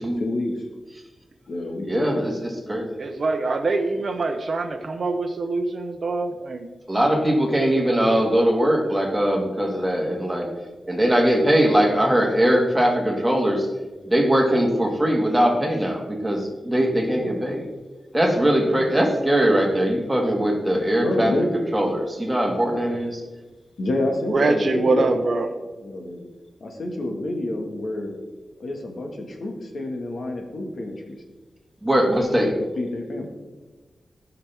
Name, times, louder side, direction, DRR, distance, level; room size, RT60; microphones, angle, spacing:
voice 1, 0.2-0.7 1.5-2.2 17.1-17.3 18.6-18.9 20.4-20.5 20.7-21.5 22.7-23.0 23.8-25.2 25.8-26.3 26.6-28.1 28.6-31.2 32.1-33.3, left 1 dB, 65° left, 2 dB, 1.7 m, -28 dB
voice 2, 1.9-2.9 6.9-10.5 10.9-13.7 14.1-17.7 18.1-21.3 21.7-23.2 31.8-32.5, equal, 10° right, 0 dB, 1.8 m, -21 dB
voice 3, 3.0-6.7 24.3-25.5, right 3 dB, 50° right, 4 dB, 0.7 m, -24 dB
14.5 x 5.8 x 3.5 m, 1.2 s
wide cardioid pair, 100°, 0 cm